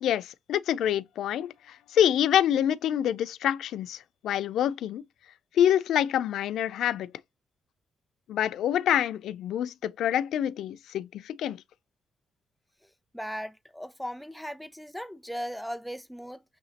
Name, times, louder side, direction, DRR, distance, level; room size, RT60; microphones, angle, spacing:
voice 1, 0.0-5.0 5.5-7.1 8.3-11.6, left 10 dB, 70° left, 0.4 m, -26 dB
voice 2, 13.1-16.4, equal, ahead, 0.3 m, -37 dB
6.3 x 2.9 x 2.8 m
cardioid pair, 145°, 0 cm